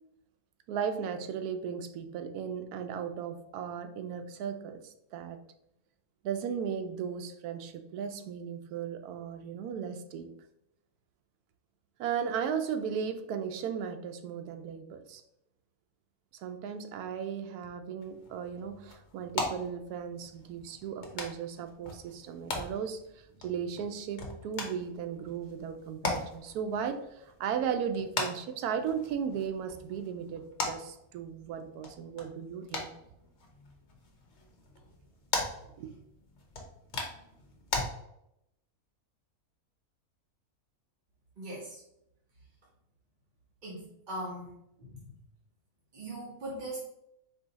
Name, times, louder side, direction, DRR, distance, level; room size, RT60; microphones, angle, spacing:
voice 1, 0.7-5.4 6.2-10.3 12.0-15.2 16.3-32.9 35.8-35.9, right 7 dB, 80° right, 1.1 m, -36 dB
sound 1, 18.0-37.8, left 3 dB, 50° left, 1.1 m, -40 dB
voice 2, 41.4-41.8 43.6-44.5 44.8-45.1 45.9-46.8, right 1 dB, 40° right, 0.8 m, -40 dB
4.6 x 2.8 x 3.9 m
omnidirectional pair, 1.6 m